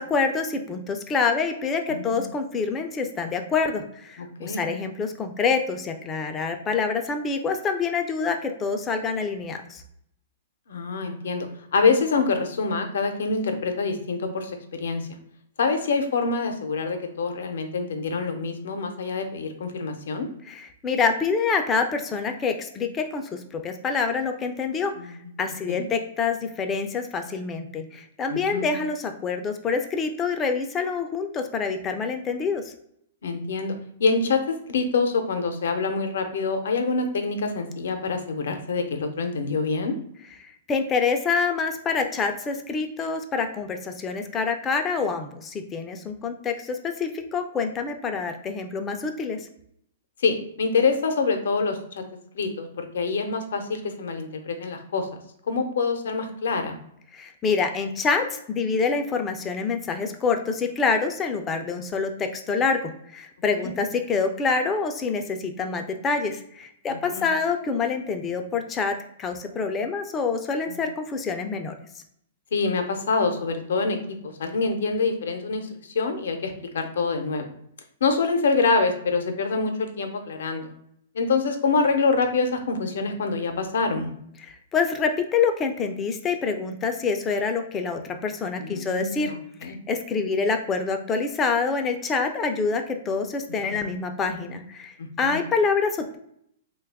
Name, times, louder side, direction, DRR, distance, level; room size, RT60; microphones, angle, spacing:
voice 1, 0.0-9.8 20.5-32.7 40.7-49.4 57.1-68.9 69.2-71.7 84.4-89.3 89.6-96.2, left 5 dB, 15° left, 6 dB, 0.3 m, -26 dB
voice 2, 1.9-2.3 4.2-4.6 10.7-11.5 11.7-15.0 15.6-20.3 25.0-25.3 25.7-25.8 28.3-28.7 33.2-33.7 34.0-39.9 50.2-51.8 52.3-55.1 55.5-56.8 63.6-63.7 66.9-67.3 70.7-70.8 72.5-74.0 74.2-77.5 78.0-80.7 81.1-84.1 88.6-89.8 93.7-93.8 95.0-95.4, left 4 dB, 75° left, 5 dB, 0.6 m, -26 dB
3.2 x 2.3 x 3.4 m, 0.72 s
hypercardioid pair, 155°, 0 cm